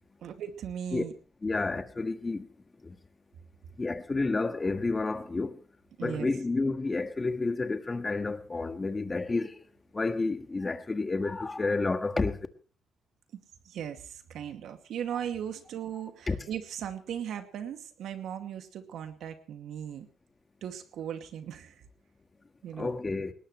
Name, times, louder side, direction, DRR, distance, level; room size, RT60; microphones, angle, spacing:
voice 1, 0.2-1.1 6.0-6.3 13.3-20.1 20.6-21.8 22.6-22.9, right 9 dB, 75° right, 2.3 m, -38 dB
voice 2, 1.4-2.5 3.8-5.6 6.0-9.5 9.9-12.4 16.3-16.4 22.8-23.3, left 3 dB, 25° left, 1.6 m, -30 dB
20.5 x 19.0 x 3.2 m
cardioid pair, 90°, 0 cm